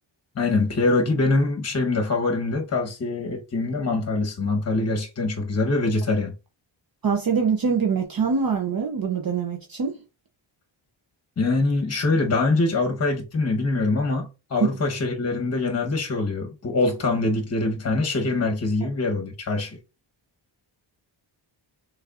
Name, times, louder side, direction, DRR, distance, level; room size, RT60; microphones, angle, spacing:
voice 1, 0.3-6.3 11.4-19.8, left 3 dB, 30° left, 1.0 m, -24 dB
voice 2, 7.0-10.0 14.6-14.7, right 6 dB, 45° right, 0.8 m, -24 dB
6.3 x 3.4 x 2.4 m
wide cardioid pair, 120°, 49 cm